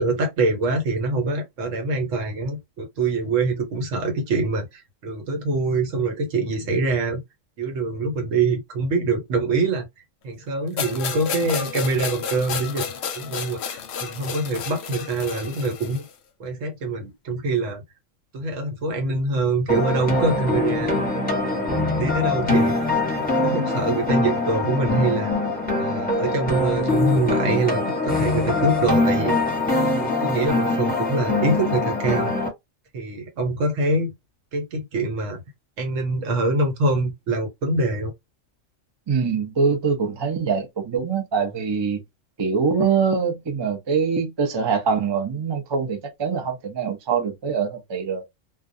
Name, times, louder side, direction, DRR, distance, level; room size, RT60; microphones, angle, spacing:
voice 1, 0.0-7.2 7.6-9.9 10.2-12.9 13.1-16.1 16.4-17.8 18.3-21.0 21.5-22.8 23.1-25.3 25.8-29.3 29.9-32.3 32.9-34.1 34.5-35.4 35.8-38.1, right 3 dB, 75° right, 1.2 m, -24 dB
sound 1, 10.8-16.1, left 7 dB, 65° left, 0.8 m, -31 dB
sound 2, 19.7-32.5, left 2 dB, 5° left, 1.0 m, -23 dB
voice 2, 39.1-42.0 42.4-48.2, right 5 dB, 40° right, 0.4 m, -23 dB
2.4 x 2.3 x 2.6 m
omnidirectional pair, 1.4 m